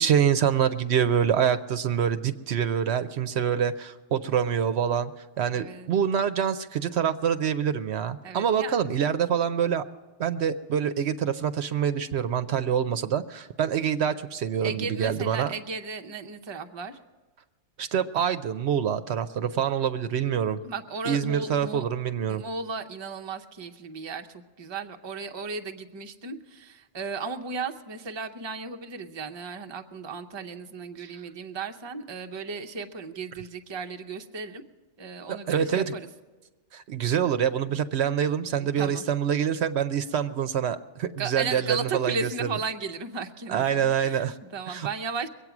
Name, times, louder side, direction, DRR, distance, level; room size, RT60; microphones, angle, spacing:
voice 1, 0.0-5.1 5.4-9.8 10.2-15.5 17.8-20.6 21.1-22.4 31.0-31.1 35.3-36.0 36.7-42.6 43.5-44.4 44.7-44.9, right 8 dB, 70° right, 10 dB, 0.9 m, -26 dB
voice 2, 5.5-5.9 8.2-8.8 14.6-17.0 20.6-21.8 22.3-34.6 35.0-36.1 37.7-37.8 38.8-39.0 41.2-45.3, right 4 dB, 30° right, 5 dB, 0.6 m, -35 dB
22.5 x 8.5 x 6.0 m, 1.3 s
omnidirectional pair, 1.2 m